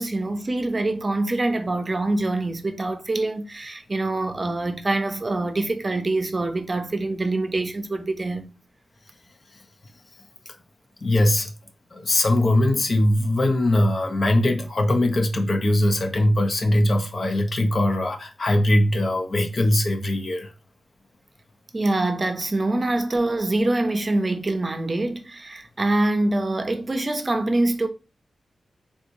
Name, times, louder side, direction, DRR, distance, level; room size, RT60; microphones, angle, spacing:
voice 1, 0.0-8.5 21.7-27.9, right 2 dB, 35° right, 0.5 m, -25 dB
voice 2, 11.0-11.5 11.9-20.5, left 1 dB, 50° left, 0.6 m, -21 dB
3.5 x 2.8 x 2.6 m
cardioid pair, 70°, 0 cm